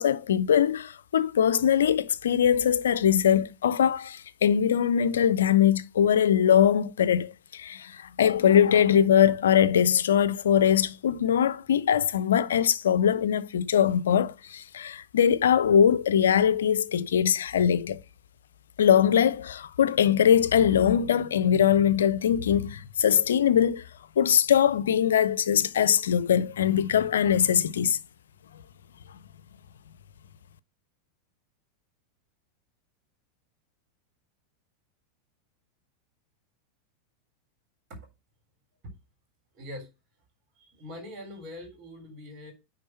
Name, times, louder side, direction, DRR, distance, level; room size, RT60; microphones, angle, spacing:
voice 1, 0.0-18.0 18.8-23.8 24.2-28.0, left 9 dB, 70° left, 0.5 m, -22 dB
voice 2, 39.5-39.9 40.6-42.5, left 1 dB, 40° right, 3.5 m, -42 dB
9.8 x 3.8 x 5.5 m
figure-of-eight pair, 90°, 0 cm